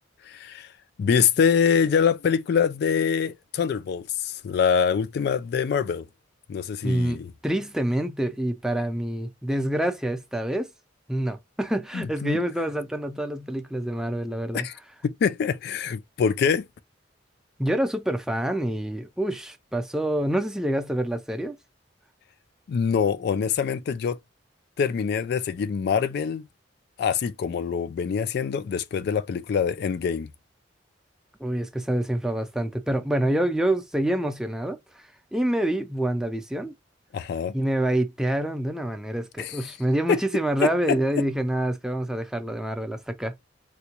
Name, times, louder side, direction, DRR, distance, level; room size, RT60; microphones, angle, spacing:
voice 1, 0.2-0.7 1.0-6.1 6.5-7.3 11.9-12.4 14.5-14.8 15.0-16.7 22.7-24.2 24.8-26.4 27.0-30.3 37.1-37.5 39.4-39.6 40.1-40.2 40.6-41.0, left 6 dB, 60° left, 0.3 m, -24 dB
voice 2, 6.8-10.7 11.1-14.7 17.6-21.6 31.4-36.7 37.5-43.4, right 1 dB, 5° right, 0.5 m, -27 dB
3.6 x 2.2 x 2.9 m
head